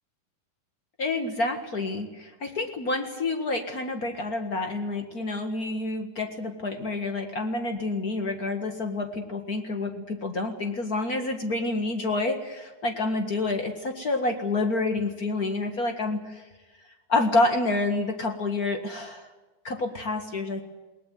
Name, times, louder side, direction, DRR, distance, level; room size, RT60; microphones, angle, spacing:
voice 1, 1.0-16.4 17.1-19.3 19.6-20.6, left 2 dB, 85° left, 5 dB, 0.8 m, -28 dB
21.5 x 19.5 x 9.4 m, 1.2 s
omnidirectional pair, 4.8 m